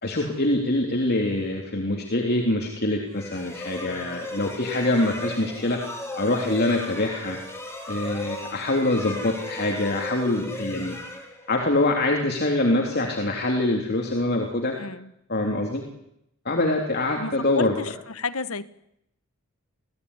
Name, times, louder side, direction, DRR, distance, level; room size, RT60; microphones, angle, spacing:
voice 1, 0.0-5.8 6.1-7.4 7.9-11.0 11.5-14.7 15.3-15.8 16.4-17.8, left 2 dB, 45° left, 1 dB, 3.4 m, -24 dB
sound 1, 3.1-11.9, left 1 dB, 10° left, 4.8 m, -36 dB
voice 2, 17.2-17.9 18.2-18.7, left 4 dB, 70° left, 14 dB, 1.2 m, -31 dB
28.5 x 18.0 x 9.9 m, 0.80 s
head